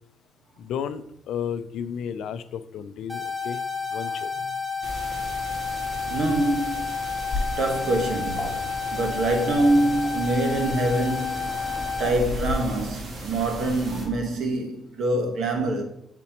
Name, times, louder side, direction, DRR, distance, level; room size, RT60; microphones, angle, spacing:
voice 1, 0.6-3.6 3.9-4.3, left 8 dB, 80° left, 0.4 m, -33 dB
sound 1, 3.1-12.1, left 5 dB, 5° right, 1.0 m, -30 dB
sound 2, 4.8-14.1, right 1 dB, 45° right, 1.8 m, -38 dB
voice 2, 6.1-6.9 7.6-11.7 12.0-15.8, right 1 dB, 65° right, 1.2 m, -25 dB
Waves surf, 7.3-12.5, left 2 dB, 20° left, 2.4 m, -36 dB
8.3 x 4.2 x 2.9 m
cardioid pair, 90°, 0 cm